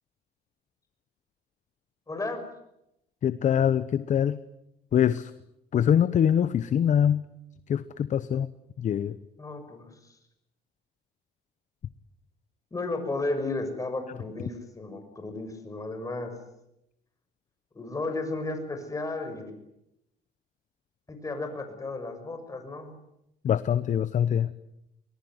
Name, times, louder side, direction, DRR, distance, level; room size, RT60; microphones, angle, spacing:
voice 1, 2.1-2.5 9.4-10.1 12.7-16.4 17.7-19.5 21.1-23.0, left 2 dB, 20° left, 6 dB, 6.2 m, -34 dB
voice 2, 3.2-4.4 4.9-5.3 5.7-7.2 7.7-8.5 8.8-9.2 23.4-24.5, left 9 dB, 45° left, 14 dB, 0.9 m, -24 dB
24.5 x 19.5 x 9.5 m, 0.84 s
cardioid pair, 110°, 17 cm